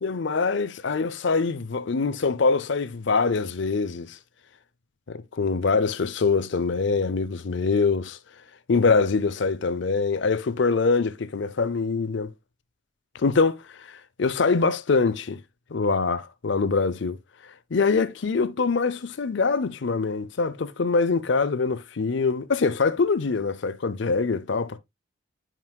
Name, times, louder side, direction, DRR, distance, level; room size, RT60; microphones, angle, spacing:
voice 1, 0.0-4.2 5.1-8.2 8.7-12.3 13.1-15.4 15.7-17.2 17.4-24.8, left 4 dB, 60° left, 0.5 m, -24 dB
9.1 x 6.0 x 2.3 m
head